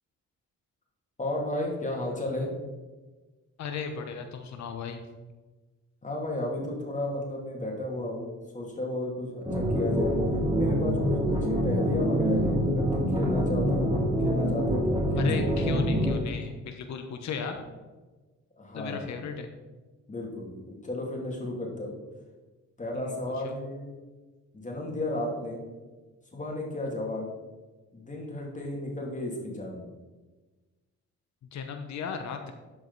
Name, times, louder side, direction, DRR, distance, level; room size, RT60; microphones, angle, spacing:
voice 1, 1.2-2.5 6.0-8.3 8.5-10.2 10.6-15.3 18.6-19.0 20.1-21.9 22.8-24.0 24.5-25.6 26.3-27.3 27.9-29.8, left 1 dB, 25° left, -1 dB, 2.5 m, -33 dB
voice 2, 3.6-5.0 15.2-17.6 18.7-19.5 22.9-23.1 23.4-23.6 31.5-32.5, left 6 dB, 65° left, 6 dB, 0.9 m, -36 dB
sound 1, 9.4-16.1, equal, 15° right, 2.8 m, -25 dB
12.0 x 4.9 x 4.0 m, 1.3 s
cardioid pair, 90°, 30 cm